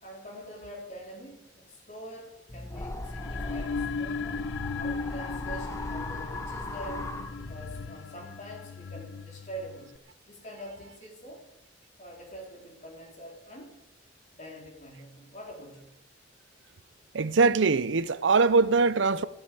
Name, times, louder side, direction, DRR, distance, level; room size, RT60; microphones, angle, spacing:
voice 1, 0.0-4.3 4.7-7.1 7.5-10.0 10.3-11.5 12.0-13.8 14.3-15.9, right 1 dB, 40° left, 3.5 m, -45 dB
sound 1, 2.5-7.9, left 1 dB, 15° left, 0.9 m, -38 dB
sound 2, 3.0-10.0, left 5 dB, 75° left, 0.5 m, -37 dB
voice 2, 17.1-19.2, right 4 dB, 70° right, 0.6 m, -22 dB
15.0 x 7.8 x 8.3 m
head